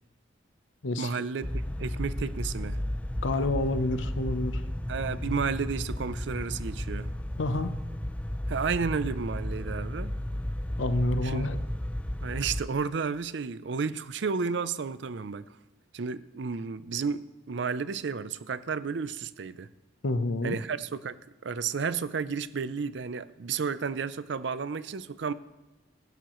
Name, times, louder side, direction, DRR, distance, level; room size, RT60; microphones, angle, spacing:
voice 1, 1.0-2.8 4.9-7.1 8.5-10.2 11.2-11.5 12.2-15.6 15.9-19.7 20.4-25.3, right 5 dB, 65° right, 0.5 m, -32 dB
sound 1, 1.4-12.6, left 1 dB, 5° left, 0.4 m, -33 dB
voice 2, 3.2-4.6 7.4-7.7 10.8-11.6 20.0-20.6, left 2 dB, 75° left, 0.8 m, -28 dB
16.5 x 12.0 x 3.1 m
head